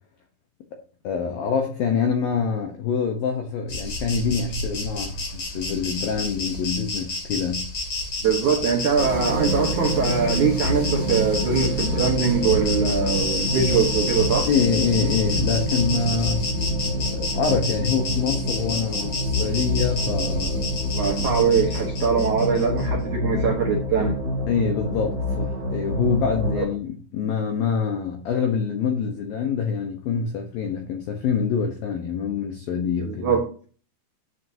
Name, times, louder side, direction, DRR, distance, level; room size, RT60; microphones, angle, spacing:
voice 1, 1.0-7.6 14.5-16.5 17.1-20.6 24.5-33.3, left 6 dB, 80° left, 2.1 m, -25 dB
Insect, 3.7-22.9, left 2 dB, 35° left, 3.1 m, -30 dB
voice 2, 8.2-14.5 21.0-24.2 26.6-26.7 33.0-33.5, right 6 dB, 80° right, 1.7 m, -22 dB
sound 1, 9.0-26.6, equal, 20° right, 2.0 m, -27 dB
12.0 x 7.9 x 2.8 m
omnidirectional pair, 5.8 m